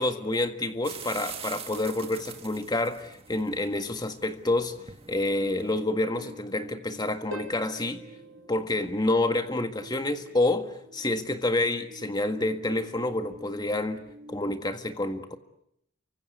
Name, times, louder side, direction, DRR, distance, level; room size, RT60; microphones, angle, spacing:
voice 1, 0.0-4.7 5.1-8.0 8.5-14.0 14.3-15.4, left 2 dB, 20° left, 1.7 m, -28 dB
sound 1, 0.8-5.8, right 7 dB, 25° right, 1.9 m, -44 dB
sound 2, 5.4-14.4, equal, 45° right, 6.6 m, -50 dB
Harp, 7.3-9.8 13.3-13.4, right 1 dB, 65° right, 3.3 m, -45 dB
29.5 x 24.5 x 8.1 m
head